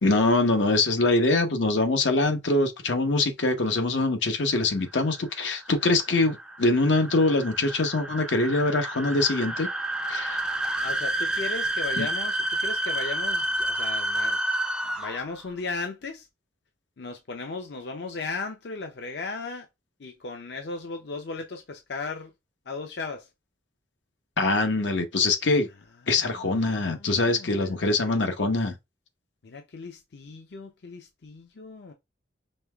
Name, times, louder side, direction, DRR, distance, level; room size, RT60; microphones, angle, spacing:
voice 1, 0.0-9.7 10.1-10.4 12.0-12.1 24.4-25.7 26.1-28.7, left 2 dB, 85° left, 0.9 m, -23 dB
sound 1, 4.7-15.4, right 1 dB, 5° right, 0.4 m, -30 dB
voice 2, 10.7-14.4 15.0-16.3 17.0-19.7 20.0-22.3 22.7-23.3 26.1-27.8 29.4-31.9, left 4 dB, 65° left, 0.6 m, -36 dB
5.4 x 3.1 x 2.3 m
head